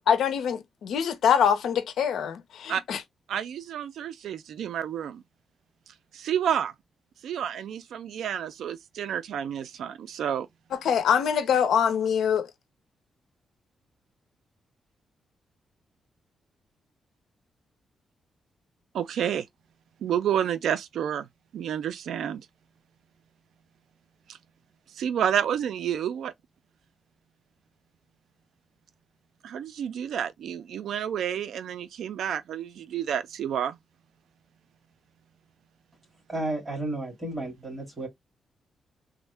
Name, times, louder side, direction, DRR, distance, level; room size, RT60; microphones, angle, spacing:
voice 1, 0.0-3.0 10.7-12.5, left 8 dB, 80° left, 0.6 m, -24 dB
voice 2, 3.3-5.2 6.2-6.7 7.2-10.5 18.9-19.4 20.0-21.2 21.5-22.4 25.0-26.3 29.4-33.7, right 9 dB, 80° right, 0.3 m, -29 dB
voice 3, 36.3-38.1, right 1 dB, 15° right, 1.9 m, -32 dB
3.5 x 2.1 x 3.2 m
wide cardioid pair, 175°, 0 cm